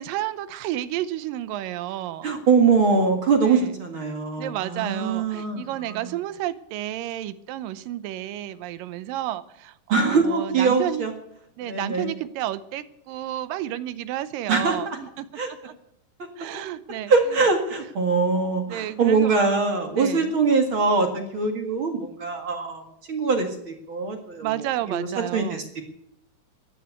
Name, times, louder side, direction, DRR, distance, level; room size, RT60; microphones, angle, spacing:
voice 1, 0.0-2.3 3.4-3.7 4.4-11.1 11.6-15.3 16.4-17.1 18.7-19.5 19.9-20.3 24.4-25.7, right 13 dB, 85° right, 15 dB, 2.4 m, -31 dB
voice 2, 2.2-6.0 9.9-11.1 11.6-12.1 14.5-15.0 15.4-15.5 17.1-22.8 23.1-24.5 24.9-25.1 25.3-25.8, right 4 dB, 45° right, 4 dB, 2.3 m, -23 dB
15.0 x 10.5 x 8.2 m, 0.75 s
omnidirectional pair, 3.9 m